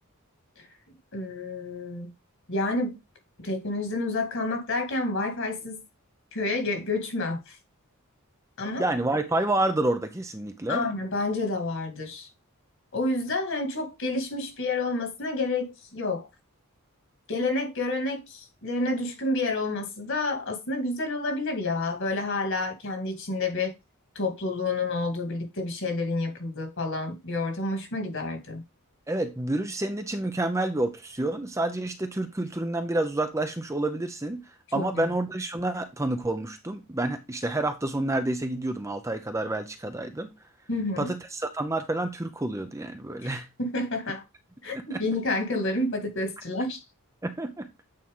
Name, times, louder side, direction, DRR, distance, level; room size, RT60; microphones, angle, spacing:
voice 1, 1.1-2.1 2.5-3.0 3.4-5.8 6.3-7.6 8.6-8.9 10.7-12.3 12.9-16.3 17.3-23.7 24.2-28.6 34.7-35.0 40.7-41.1 43.2-43.3 43.6-44.2 44.6-46.8, left 2 dB, 60° left, 2.4 m, -29 dB
voice 2, 8.8-10.9 29.1-34.4 34.7-40.3 41.0-43.5 44.7-45.0 47.2-47.7, right 2 dB, 15° right, 0.7 m, -29 dB
8.7 x 4.5 x 3.7 m
head